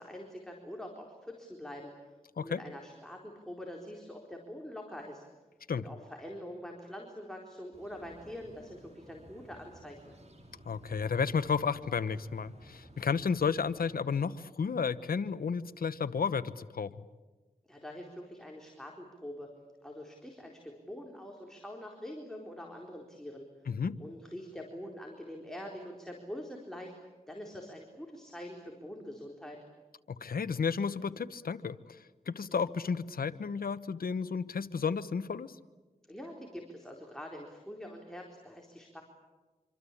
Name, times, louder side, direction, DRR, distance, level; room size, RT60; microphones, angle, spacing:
voice 1, 0.0-5.2 5.8-10.1 17.7-19.5 19.8-23.5 24.0-26.9 27.3-29.6 36.1-39.0, equal, 5° left, 0 dB, 4.2 m, -45 dB
sound 1, 7.7-13.9, right 1 dB, 50° right, 5.6 m, -55 dB
voice 2, 10.6-16.9 23.7-24.0 30.1-35.6, left 6 dB, 85° left, 13 dB, 1.0 m, -32 dB
26.0 x 26.0 x 8.6 m, 1.2 s
wide cardioid pair, 65°, 15 cm